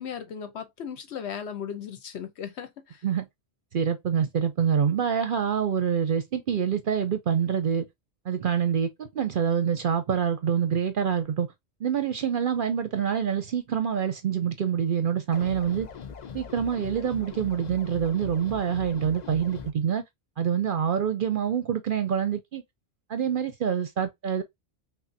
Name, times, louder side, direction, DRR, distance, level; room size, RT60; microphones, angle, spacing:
voice 1, 0.0-3.0, left 8 dB, 80° left, 1.0 m, -37 dB
voice 2, 3.7-7.8 8.3-11.5 11.8-15.9 16.3-20.0 20.4-22.6 23.1-24.4, right 8 dB, 60° right, 0.7 m, -26 dB
sound 1, 15.3-19.7, left 6 dB, 50° left, 0.6 m, -41 dB
5.7 x 2.0 x 2.6 m
omnidirectional pair, 1.1 m